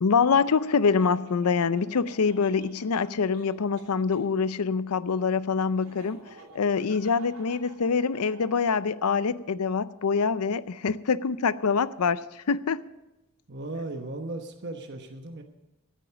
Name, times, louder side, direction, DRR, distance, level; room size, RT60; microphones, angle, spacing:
voice 1, 0.0-6.2 6.5-12.8, left 5 dB, 90° left, 16 dB, 0.6 m, -25 dB
Laughter, 0.5-4.2 5.7-8.7, right 2 dB, 75° right, 2.9 m, -51 dB
voice 2, 13.5-15.4, right 2 dB, 50° right, 4 dB, 1.1 m, -36 dB
14.0 x 9.1 x 6.9 m, 0.99 s
head